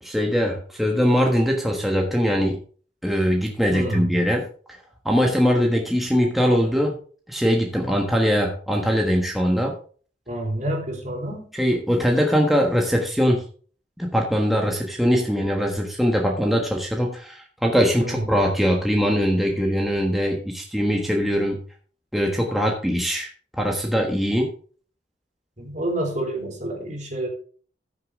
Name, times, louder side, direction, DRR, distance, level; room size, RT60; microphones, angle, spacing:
voice 1, 0.0-2.6 3.0-4.4 5.0-7.0 7.3-9.7 11.6-13.4 14.0-21.6 22.1-24.5, equal, ahead, 0 dB, 1.3 m, -21 dB
voice 2, 3.7-4.1 10.3-11.5 18.0-18.2 25.6-27.3, right 1 dB, 45° right, 1 dB, 3.4 m, -28 dB
14.0 x 6.7 x 3.7 m, 0.43 s
head